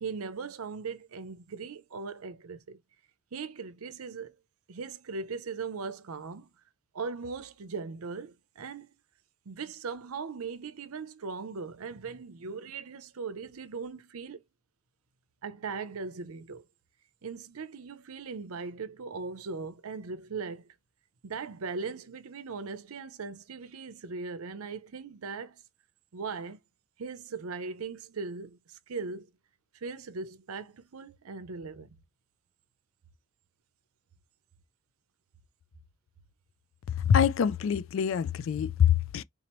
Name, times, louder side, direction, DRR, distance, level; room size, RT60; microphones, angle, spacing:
voice 1, 0.0-2.8 3.3-4.3 4.7-6.5 6.9-8.9 9.5-14.4 15.4-16.7 17.2-20.7 21.2-25.6 26.1-26.6 27.0-29.3 29.7-31.9, right 4 dB, 85° right, 0.6 m, -39 dB
voice 2, 37.1-39.2, left 8 dB, 65° left, 0.3 m, -25 dB
3.8 x 3.0 x 2.9 m
head